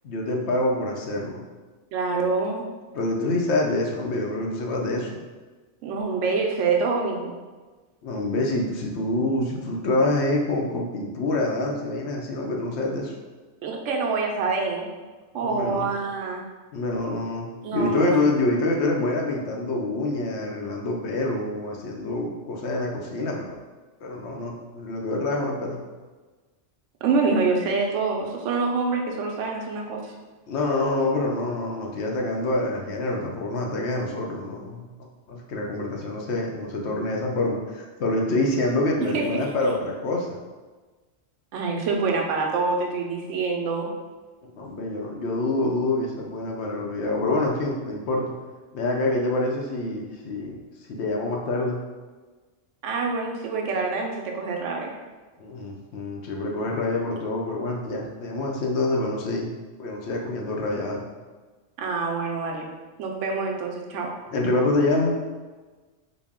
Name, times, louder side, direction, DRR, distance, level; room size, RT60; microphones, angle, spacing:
voice 1, 0.0-1.4 2.9-5.2 8.0-13.2 15.4-15.9 16.7-23.6 24.0-25.8 30.5-34.8 35.3-40.4 44.4-48.2 48.7-50.6 50.9-51.8 55.4-59.5 59.8-61.1 64.3-65.2, left 2 dB, 70° left, 0 dB, 0.9 m, -26 dB
voice 2, 1.9-2.7 5.8-7.3 13.6-14.9 15.3-16.4 17.6-18.3 27.0-30.1 39.1-39.5 41.5-43.9 52.8-55.0 61.8-62.7 63.0-64.1, right 4 dB, 80° right, 1 dB, 0.9 m, -26 dB
3.9 x 2.1 x 3.6 m, 1.3 s
omnidirectional pair, 1.2 m